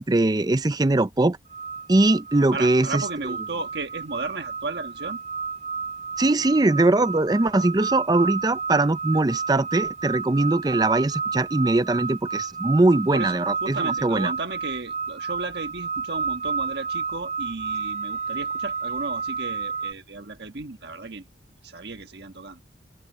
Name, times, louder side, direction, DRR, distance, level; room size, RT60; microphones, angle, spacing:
voice 1, 0.0-1.4 1.9-3.0 6.2-14.3, right 2 dB, 20° right, 0.5 m, -21 dB
sound 1, 1.5-19.9, right 5 dB, 40° right, 3.8 m, -31 dB
voice 2, 2.5-5.2 13.1-21.3 21.6-22.6, right 3 dB, 60° right, 1.5 m, -34 dB
open air
head